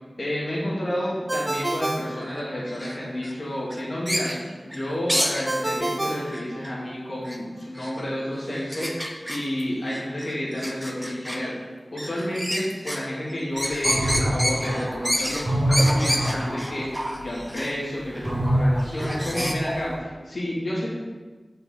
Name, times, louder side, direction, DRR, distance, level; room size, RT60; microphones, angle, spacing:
voice 1, 0.2-11.5 11.9-20.9, equal, 60° left, -6 dB, 2.3 m, -30 dB
Ringtone, 1.3-3.0 5.5-7.1, right 1 dB, 30° right, 0.3 m, -30 dB
sound 1, 2.0-3.3 3.7-5.5 6.3-6.7 7.2-7.4 7.8-7.9 8.7-9.6 9.9-11.4 12.0-13.0 13.3-17.7 18.1-18.3 18.8-19.5, equal, ahead, 0.7 m, -29 dB
sound 2, 13.6-17.1 18.2-19.9, equal, 50° right, 2.1 m, -25 dB
7.5 x 5.5 x 3.8 m, 1.3 s
wide cardioid pair, 65°, 0 cm